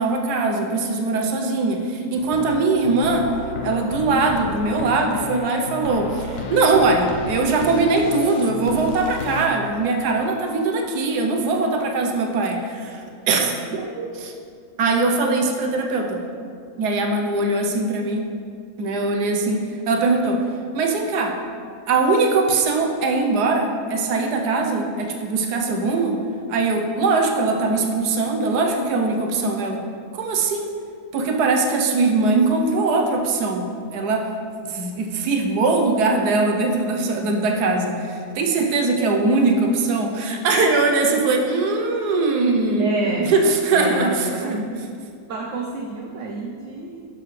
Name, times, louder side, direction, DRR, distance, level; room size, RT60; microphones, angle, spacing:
voice 1, 0.0-3.3 3.6-13.6 14.8-16.2 16.8-18.2 18.8-20.4 20.7-21.4 21.9-26.2 26.5-29.8 30.1-30.7 31.1-34.2 34.6-42.9 43.3-44.7, right 3 dB, 80° right, 3 dB, 1.4 m, -21 dB
sound 1, 2.1-9.5, left 3 dB, 65° left, 1.1 m, -32 dB
voice 2, 13.7-14.1 42.8-43.3 43.7-44.6 45.3-47.1, right 3 dB, 60° right, -1 dB, 1.0 m, -28 dB
10.5 x 6.7 x 3.3 m, 2.2 s
omnidirectional pair, 1.7 m